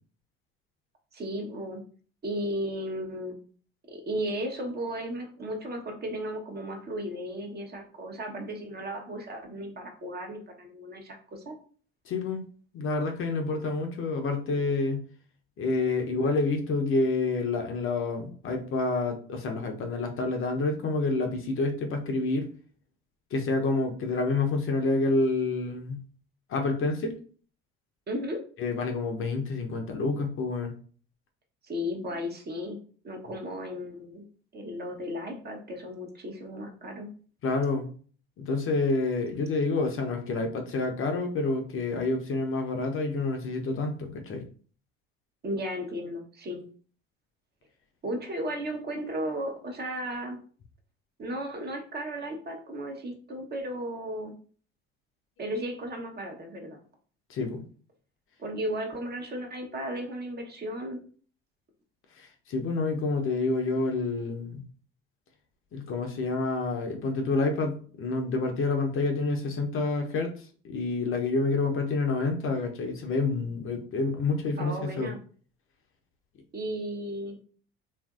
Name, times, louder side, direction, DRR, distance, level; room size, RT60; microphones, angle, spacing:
voice 1, 1.1-1.8 2.2-3.4 3.9-11.6 28.1-28.4 31.6-32.8 33.0-34.2 34.5-37.1 45.4-46.6 48.0-50.4 51.2-54.3 55.4-56.8 58.4-61.0 74.6-75.2 76.5-77.4, equal, 30° right, 3 dB, 0.8 m, -35 dB
voice 2, 12.1-12.4 12.7-15.0 15.6-22.5 23.3-26.0 26.5-27.2 28.6-30.7 37.4-37.9 38.4-44.4 57.3-57.6 62.2-64.6 65.7-75.1, left 3 dB, 45° left, 4 dB, 0.6 m, -28 dB
2.8 x 2.5 x 2.3 m, 0.43 s
hypercardioid pair, 70°, 30 cm